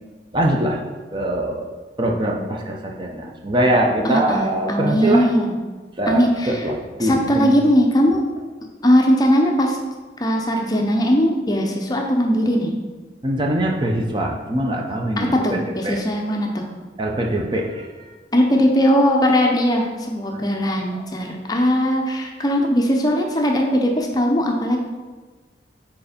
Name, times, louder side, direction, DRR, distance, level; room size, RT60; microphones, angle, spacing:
voice 1, 0.3-0.8 1.1-1.7 2.0-5.3 6.0-7.5 13.2-15.6 15.8-16.0 17.0-18.1 20.3-20.4 20.9-21.0, right 1 dB, 25° right, 0 dB, 0.6 m, -22 dB
voice 2, 4.0-5.5 6.1-6.6 7.0-8.2 8.8-9.8 10.2-12.7 15.2-16.7 18.3-24.8, equal, 20° left, 1 dB, 0.6 m, -19 dB
4.7 x 4.2 x 5.1 m, 1.3 s
head